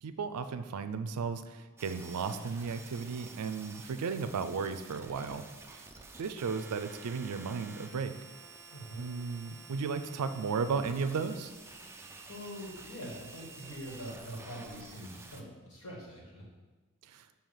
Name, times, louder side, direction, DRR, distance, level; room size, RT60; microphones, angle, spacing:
voice 1, 0.0-5.4 5.7-5.8 6.2-8.1 9.0-11.5 17.1-17.2, right 5 dB, 90° right, 11 dB, 0.4 m, -35 dB
sound 1, 1.8-15.4, right 3 dB, 10° right, 0.4 m, -50 dB
voice 2, 8.7-9.0 12.3-16.4, equal, 65° left, -3 dB, 1.8 m, -44 dB
7.0 x 2.8 x 5.6 m, 1.3 s
head